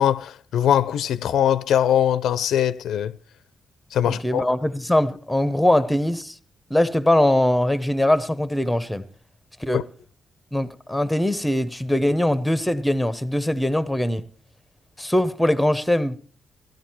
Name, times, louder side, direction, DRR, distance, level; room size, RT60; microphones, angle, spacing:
voice 1, 0.0-3.1 3.9-4.5 9.7-9.8, left 10 dB, 90° left, 0.6 m, -21 dB
voice 2, 4.1-6.4 6.7-9.0 9.6-9.8 10.5-14.3 15.0-16.2, left 1 dB, 5° left, 0.8 m, -21 dB
16.5 x 12.0 x 4.5 m
wide cardioid pair, 155°, 0 cm